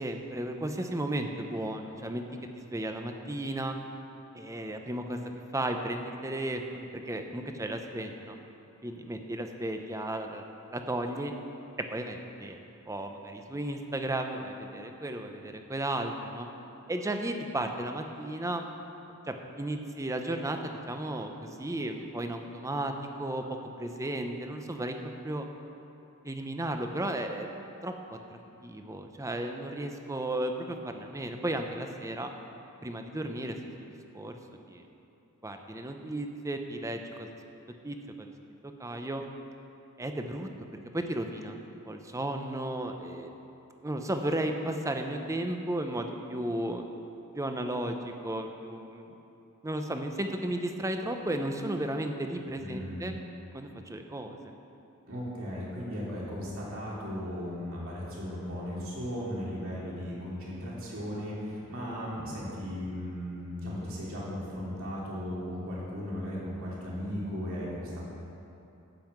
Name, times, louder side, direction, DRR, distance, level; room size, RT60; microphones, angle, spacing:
voice 1, 0.0-2.2 2.6-3.8 4.3-5.2 5.5-8.4 8.8-10.4 10.7-11.3 11.9-12.6 12.9-16.5 16.9-18.7 19.3-23.5 23.8-25.0 25.2-25.5 26.2-27.5 27.8-32.3 32.8-33.9 34.1-34.4 34.7-34.8 35.4-37.3 37.8-38.3 38.6-39.2 40.0-40.5 40.9-43.3 43.8-46.8 47.3-49.1 49.6-53.2 53.5-54.4, right 1 dB, 15° right, 5 dB, 0.6 m, -34 dB
voice 2, 52.6-53.1 55.0-68.0, equal, 65° right, -6 dB, 2.9 m, -36 dB
12.0 x 5.6 x 7.8 m, 2.8 s
head